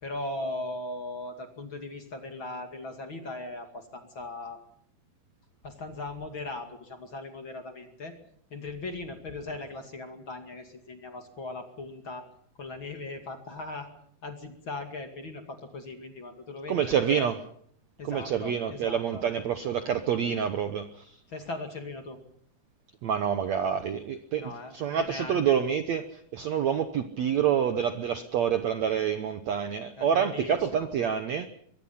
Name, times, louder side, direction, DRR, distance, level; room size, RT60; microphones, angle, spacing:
voice 1, 0.0-4.6 5.6-8.1 8.5-12.3 12.6-13.9 14.2-17.3 18.0-19.2 21.3-22.2 24.4-25.6 30.0-30.9, left 2 dB, 35° left, 5 dB, 2.6 m, -39 dB
voice 2, 16.7-17.4 18.0-21.2 23.0-31.5, right 8 dB, 70° right, 9 dB, 1.7 m, -27 dB
24.5 x 23.5 x 5.7 m, 0.64 s
omnidirectional pair, 4.4 m